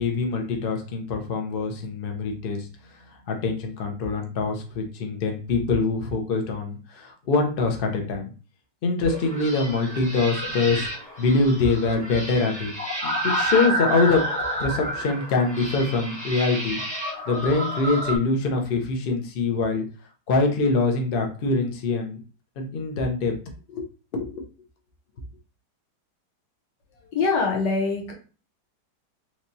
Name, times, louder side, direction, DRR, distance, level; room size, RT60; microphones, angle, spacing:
voice 1, 0.0-2.7 3.3-8.3 8.8-10.9 11.2-12.7 13.0-14.2 14.6-16.8 17.3-19.8 20.3-22.2 22.6-23.3 23.7-23.8 24.1-24.4, left 3 dB, 60° left, 3 dB, 0.5 m, -24 dB
sound 1, 9.0-18.2, right 1 dB, 5° left, 0.6 m, -30 dB
voice 2, 27.0-28.1, left 4 dB, 75° left, 1 dB, 1.5 m, -24 dB
3.2 x 3.0 x 2.7 m, 0.36 s
omnidirectional pair, 1.9 m